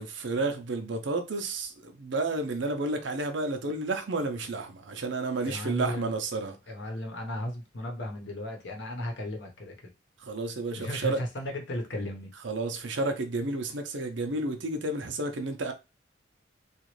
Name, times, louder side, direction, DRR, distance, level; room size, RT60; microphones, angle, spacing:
voice 1, 0.0-6.6 10.2-11.2 12.4-15.7, right 2 dB, 70° right, 0.6 m, -31 dB
voice 2, 5.4-6.1 6.7-9.9 10.8-12.3, left 1 dB, 70° left, 0.9 m, -35 dB
3.0 x 2.4 x 3.1 m
head